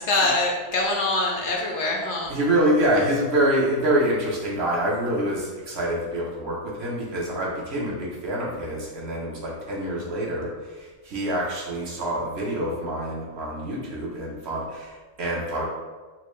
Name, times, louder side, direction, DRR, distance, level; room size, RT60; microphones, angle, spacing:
voice 1, 0.0-2.3, left 2 dB, 65° left, -1 dB, 0.8 m, -24 dB
voice 2, 2.3-10.5 10.8-15.6, right 1 dB, 55° right, -4 dB, 0.9 m, -26 dB
4.2 x 2.2 x 3.0 m, 1.3 s
omnidirectional pair, 1.4 m